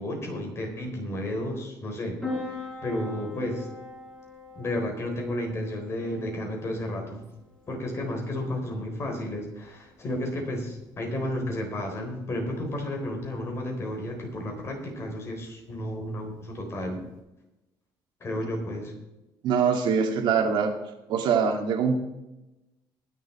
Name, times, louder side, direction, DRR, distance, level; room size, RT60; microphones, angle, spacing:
voice 1, 0.0-3.7 4.6-7.2 7.7-17.0 18.2-18.9, left 1 dB, 35° left, 2 dB, 3.7 m, -32 dB
Piano, 2.2-17.2, left 3 dB, 10° left, 4.8 m, -44 dB
voice 2, 19.4-20.7 21.1-22.0, right 6 dB, 75° right, 4 dB, 2.1 m, -23 dB
20.5 x 7.0 x 4.3 m, 0.95 s
cardioid pair, 145°, 8 cm